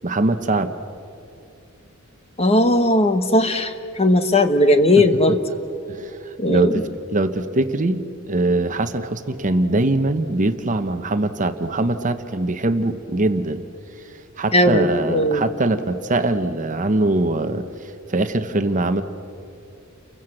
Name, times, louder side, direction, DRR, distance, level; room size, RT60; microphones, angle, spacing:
voice 1, 0.0-0.7 5.0-5.4 5.9-13.6 14.4-19.0, right 2 dB, 35° right, 9 dB, 0.9 m, -22 dB
voice 2, 2.4-5.4 6.4-6.8 14.5-15.4, left 1 dB, 30° left, 8 dB, 1.3 m, -17 dB
30.0 x 22.5 x 7.8 m, 2.7 s
head